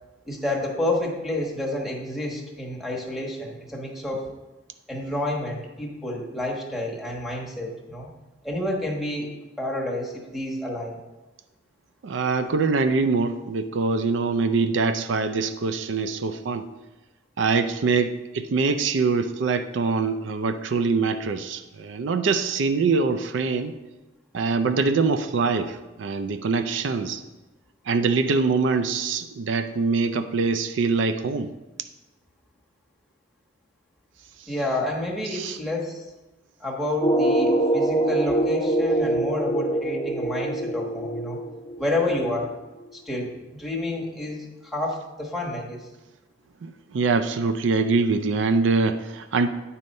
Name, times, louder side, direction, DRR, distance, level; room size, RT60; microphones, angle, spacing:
voice 1, 0.2-4.2 4.9-8.1 8.4-11.0 34.5-36.1 36.6-41.4 41.8-42.5 42.9-45.9, left 1 dB, ahead, -1 dB, 1.3 m, -29 dB
voice 2, 12.0-16.7 17.4-23.7 24.3-27.2 27.9-31.5 35.3-35.6 46.6-49.5, right 4 dB, 75° right, 9 dB, 0.4 m, -24 dB
sound 1, 37.0-42.5, right 1 dB, 15° left, 0.8 m, -24 dB
9.4 x 4.2 x 5.3 m, 1.1 s
head